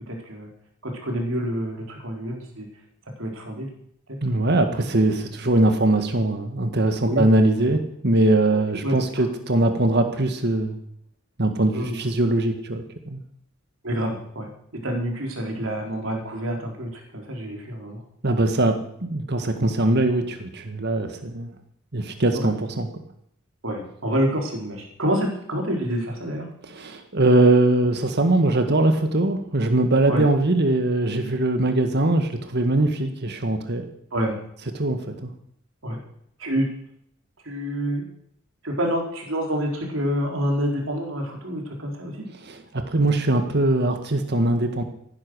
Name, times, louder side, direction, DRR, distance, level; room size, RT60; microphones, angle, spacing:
voice 1, 0.1-0.5 0.8-2.7 3.2-3.7 7.1-7.2 8.5-9.3 11.7-12.0 13.8-14.5 14.8-18.0 22.3-22.5 23.6-26.5 30.1-30.2 34.1-34.4 35.8-36.0 36.4-36.7 37.4-38.0 38.6-42.2, equal, 70° right, 1 dB, 4.1 m, -27 dB
voice 2, 4.2-10.8 11.4-13.2 18.2-21.5 21.9-22.9 26.7-33.8 34.8-35.3 42.5-42.6 42.9-44.8, right 2 dB, 55° right, 6 dB, 1.8 m, -21 dB
15.5 x 11.0 x 6.3 m, 0.71 s
head